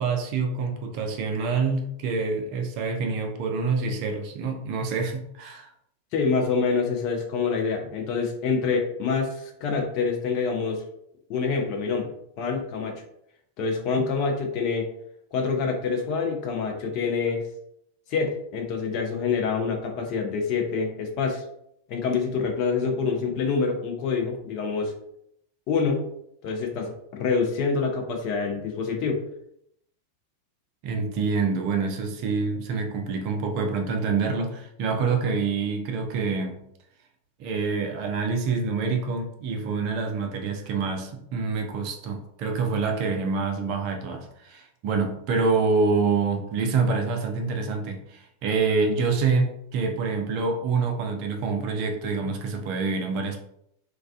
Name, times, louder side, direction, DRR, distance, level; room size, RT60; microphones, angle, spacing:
voice 1, 0.0-5.7 30.8-36.6 37.4-53.4, right 4 dB, 45° right, 3 dB, 0.4 m, -26 dB
voice 2, 6.1-10.8 11.3-12.1 12.4-12.9 13.6-14.9 15.3-17.4 18.1-21.4 21.9-24.9 25.7-26.1 26.4-29.2, left 5 dB, 40° left, 2 dB, 0.5 m, -26 dB
2.3 x 2.2 x 2.3 m, 0.74 s
figure-of-eight pair, 90°, 0 cm